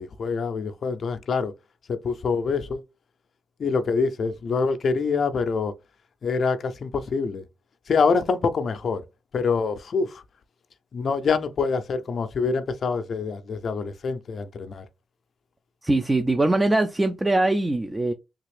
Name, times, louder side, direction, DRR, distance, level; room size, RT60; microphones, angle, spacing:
voice 1, 0.0-1.5 1.9-2.8 3.6-5.8 6.2-7.4 7.9-9.0 9.3-10.2 10.9-14.9, left 5 dB, 60° left, 0.4 m, -25 dB
voice 2, 15.8-18.1, right 2 dB, 20° right, 0.4 m, -22 dB
3.4 x 2.4 x 3.2 m
supercardioid pair, 55°, 0 cm